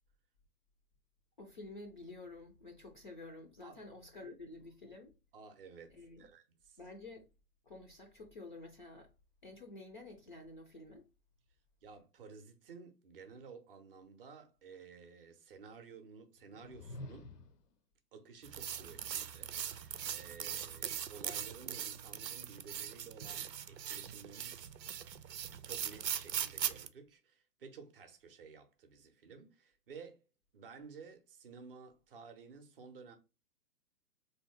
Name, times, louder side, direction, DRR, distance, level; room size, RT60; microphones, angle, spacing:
voice 1, 1.4-5.2 5.9-6.3 6.8-7.3 7.6-9.1 9.4-11.1, left 2 dB, 35° left, 0.4 m, -50 dB
voice 2, 5.3-6.8 11.8-17.3 18.1-24.7 25.6-30.3 30.5-33.2, right 5 dB, 35° right, 0.6 m, -54 dB
sound 1, 16.4-17.7, left 1 dB, 70° left, 0.7 m, -49 dB
sound 2, 18.4-26.9, right 9 dB, 80° right, 0.6 m, -40 dB
3.6 x 2.7 x 3.2 m
figure-of-eight pair, 125°, 49 cm